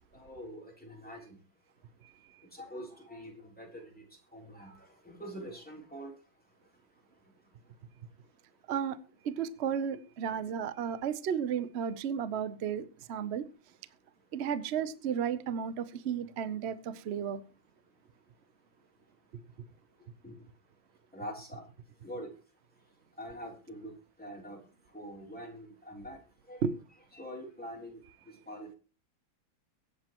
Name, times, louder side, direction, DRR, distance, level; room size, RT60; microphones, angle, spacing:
voice 1, 0.1-1.4 2.5-3.9 4.3-6.1 20.2-20.3 21.1-21.6 22.0-22.3 23.2-23.9 24.2-24.6 24.9-26.2 26.5-26.6 27.1-28.0 28.5-28.7, equal, 5° left, 3.2 m, -44 dB
voice 2, 9.2-13.4 14.3-17.4 26.6-26.7, right 8 dB, 80° right, 0.5 m, -33 dB
23.0 x 8.3 x 3.0 m
omnidirectional pair, 2.3 m